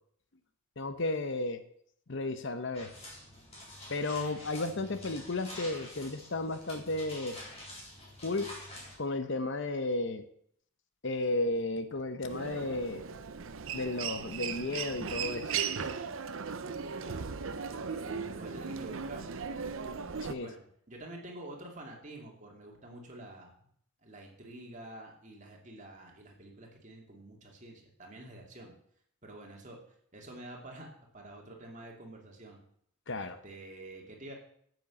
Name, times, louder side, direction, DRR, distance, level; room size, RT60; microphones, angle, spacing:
voice 1, 0.8-1.6 2.1-2.9 3.9-7.4 8.2-8.5 9.0-10.2 11.0-13.1 13.7-15.5 20.2-20.5 33.1-33.4, left 2 dB, 55° left, 10 dB, 0.8 m, -33 dB
sound 1, 2.7-8.9, left 1 dB, 30° left, 4.1 m, -47 dB
Human voice, 12.3-20.3, right 6 dB, 60° right, 0.7 m, -37 dB
voice 2, 17.8-19.3 20.4-20.6 20.9-23.7 24.0-28.7 29.2-29.8 30.1-30.9 31.1-32.6 33.1-34.3, right 1 dB, 35° right, 0 dB, 2.4 m, -48 dB
9.1 x 8.1 x 7.1 m, 0.67 s
head